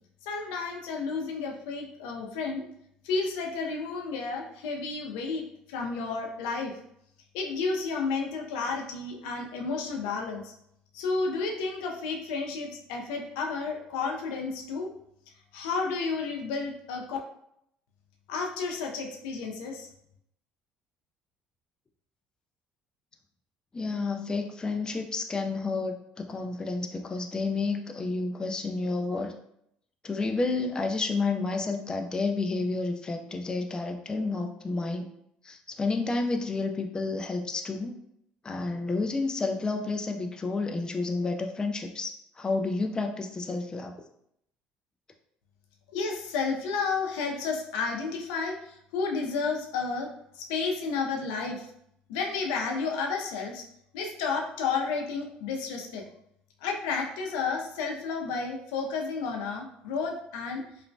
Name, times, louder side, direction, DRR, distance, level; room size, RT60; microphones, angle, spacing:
voice 1, 0.2-2.6 3.0-6.8 7.3-10.5 10.9-14.9 15.5-17.2 18.3-19.9 45.9-50.1 50.3-51.7 52.1-53.6 53.9-56.1 56.6-60.6, left 4 dB, 85° left, 1 dB, 0.5 m, -31 dB
voice 2, 23.7-29.3 30.0-35.1 35.4-38.0 38.4-44.0, left 3 dB, 20° left, 3 dB, 0.4 m, -30 dB
3.0 x 2.1 x 2.6 m, 0.73 s
supercardioid pair, 80°, 3 cm